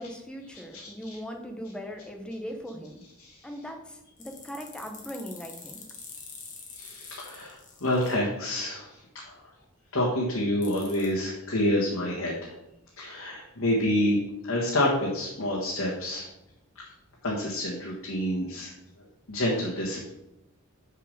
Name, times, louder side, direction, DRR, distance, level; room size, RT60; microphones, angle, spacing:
voice 1, 0.0-3.0 3.4-5.8, equal, 5° left, 3 dB, 1.0 m, -39 dB
sound 1, 4.2-8.1 10.6-11.1, left 5 dB, 40° left, 1.8 m, -45 dB
voice 2, 6.8-8.9 9.9-12.5 13.0-16.3 17.2-18.7 19.3-20.1, left 1 dB, 65° left, -4 dB, 1.7 m, -28 dB
6.9 x 4.7 x 6.6 m, 0.87 s
head